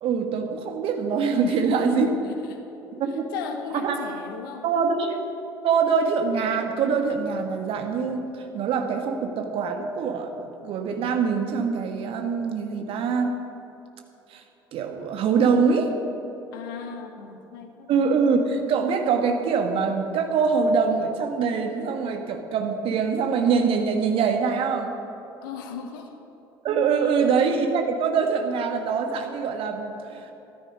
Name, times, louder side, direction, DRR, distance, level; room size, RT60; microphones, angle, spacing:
voice 1, 0.0-2.1 3.0-3.3 3.8-4.0 4.6-5.2 5.6-13.4 14.3-14.4 14.7-15.9 17.9-24.9 26.6-30.3, right 5 dB, 50° right, 5 dB, 1.5 m, -24 dB
voice 2, 1.4-2.6 3.1-4.7 16.5-17.9 25.4-26.1, left 6 dB, 65° left, 6 dB, 1.3 m, -36 dB
13.5 x 13.0 x 5.3 m, 2.9 s
figure-of-eight pair, 55°, 12 cm